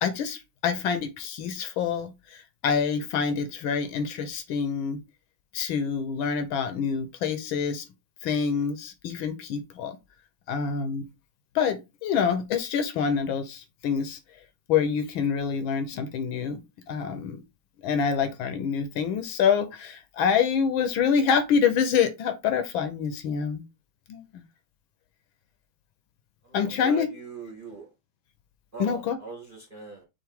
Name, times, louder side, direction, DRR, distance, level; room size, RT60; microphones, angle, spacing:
voice 1, 0.0-5.0 5.5-7.9 8.2-10.0 10.5-11.0 11.5-14.2 14.7-16.6 16.9-17.4 17.8-23.6 24.1-24.4 26.5-27.1 28.8-29.2, left 6 dB, 75° left, 1.4 m, -26 dB
voice 2, 26.4-27.9 28.7-30.0, right 4 dB, 50° right, 0.6 m, -40 dB
5.8 x 2.5 x 3.5 m
omnidirectional pair, 2.4 m